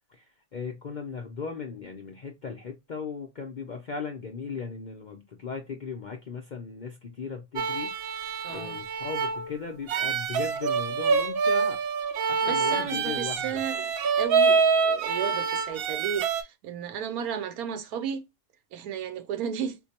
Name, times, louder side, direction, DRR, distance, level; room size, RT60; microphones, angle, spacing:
voice 1, 0.5-8.2 8.5-11.8 12.3-13.6, left 5 dB, 55° left, 0.5 m, -37 dB
sound 1, 7.6-16.4, right 5 dB, 65° right, 0.6 m, -26 dB
voice 2, 8.4-8.8 12.4-18.2 18.7-19.8, right 7 dB, 85° right, 1.1 m, -34 dB
4.4 x 2.2 x 2.8 m
omnidirectional pair, 1.5 m